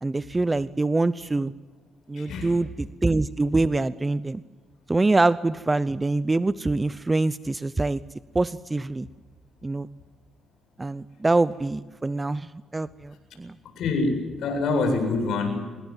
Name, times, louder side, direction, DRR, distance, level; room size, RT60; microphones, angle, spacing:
voice 1, 0.0-1.5 2.1-4.4 4.9-8.0 8.3-9.1 9.6-9.9 10.8-13.6, right 2 dB, 20° right, 15 dB, 0.7 m, -25 dB
voice 2, 2.2-2.6 13.8-15.6, left 3 dB, 75° left, 5 dB, 7.8 m, -25 dB
26.0 x 21.5 x 7.5 m, 1.3 s
cardioid pair, 90°, 0 cm